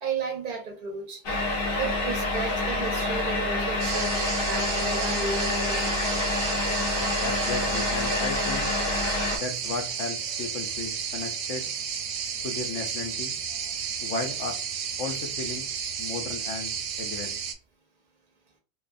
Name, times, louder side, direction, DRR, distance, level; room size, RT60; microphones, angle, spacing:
voice 1, 0.0-1.2 1.8-4.1 4.4-6.4, right 4 dB, 55° right, 0.6 m, -34 dB
sound 1, 1.2-9.4, left 2 dB, 55° left, 0.8 m, -27 dB
sound 2, 3.8-17.5, right 7 dB, 90° right, 0.9 m, -32 dB
voice 2, 7.2-8.7 9.3-11.7 12.4-13.4 14.0-14.5 15.0-15.7 16.0-17.4, left 4 dB, 85° left, 1.0 m, -34 dB
2.8 x 2.3 x 2.5 m
omnidirectional pair, 1.2 m